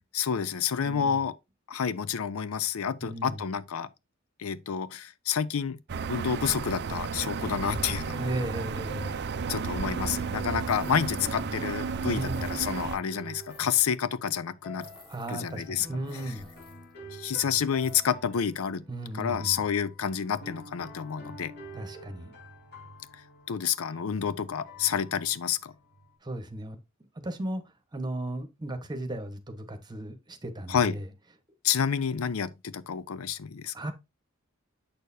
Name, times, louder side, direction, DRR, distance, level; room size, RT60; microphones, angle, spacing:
voice 1, 0.1-1.3 1.7-3.9 4.4-5.8 6.1-8.3 9.5-14.9 15.3-15.9 17.1-18.8 19.1-21.5 23.5-25.7 30.7-30.9 31.6-33.7, left 7 dB, 85° left, 0.5 m, -29 dB
voice 2, 0.8-1.2 3.0-3.4 8.2-9.2 12.0-12.6 15.1-16.5 18.9-19.6 21.7-22.3 26.2-26.8 27.2-27.6 27.9-31.1 33.7-33.9, right 1 dB, 20° right, 1.2 m, -35 dB
sound 1, 5.9-13.0, right 5 dB, 55° right, 0.5 m, -33 dB
sound 2, 7.6-26.1, equal, 55° left, 3.5 m, -48 dB
sound 3, 10.7-11.5 11.8-11.9 12.2-14.0 14.8-15.7 16.0-16.9 17.7-17.9, left 1 dB, 25° left, 3.1 m, -55 dB
7.9 x 6.5 x 2.7 m
head